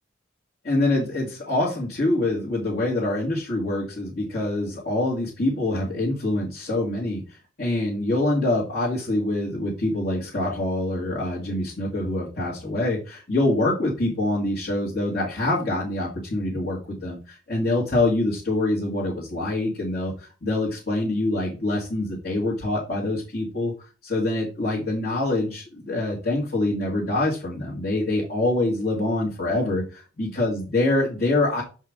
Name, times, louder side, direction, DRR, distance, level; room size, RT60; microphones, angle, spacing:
voice 1, 0.6-23.7 24.0-31.6, left 2 dB, 50° left, -7 dB, 2.4 m, -25 dB
6.7 x 5.4 x 3.7 m, 0.33 s
head